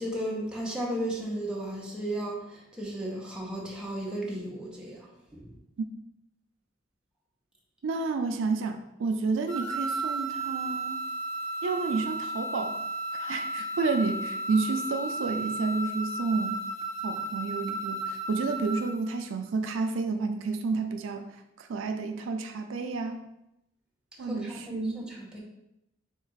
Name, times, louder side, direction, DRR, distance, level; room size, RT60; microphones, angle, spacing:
voice 1, 0.0-5.5 24.2-25.4, right 1 dB, 5° right, -4 dB, 0.7 m, -35 dB
voice 2, 7.8-11.0 11.6-12.7 13.1-16.6 17.0-23.2 24.2-25.0, right 4 dB, 80° right, 6 dB, 0.4 m, -30 dB
sound 1, 9.5-19.1, right 2 dB, 35° left, 1.0 m, -34 dB
3.5 x 2.4 x 4.5 m, 0.85 s
head